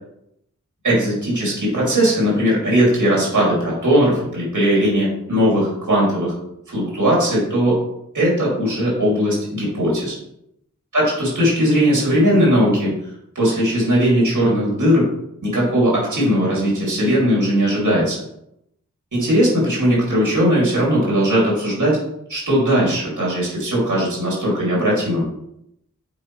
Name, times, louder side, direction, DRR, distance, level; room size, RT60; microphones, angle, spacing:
voice 1, 0.8-6.3 6.7-7.8 8.1-10.1 10.9-13.0 13.3-15.1 15.4-18.2 19.1-22.0 22.3-25.2, equal, 70° right, -5 dB, 2.7 m, -18 dB
8.5 x 4.4 x 3.2 m, 0.79 s
wide cardioid pair, 75°, 31 cm